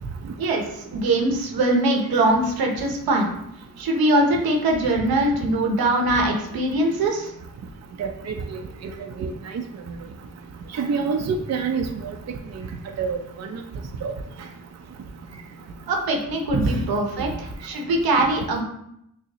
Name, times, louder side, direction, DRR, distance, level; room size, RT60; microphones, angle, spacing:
voice 1, 0.4-3.3 3.8-7.3 15.9-18.6, right 1 dB, 80° right, 1 dB, 0.8 m, -22 dB
voice 2, 8.0-8.9 9.2-9.3 10.7-12.4 13.0-13.6 14.0-14.1 16.5-16.7, right 5 dB, 50° right, 4 dB, 0.5 m, -27 dB
6.0 x 2.0 x 2.9 m, 0.77 s
supercardioid pair, 45°, 36 cm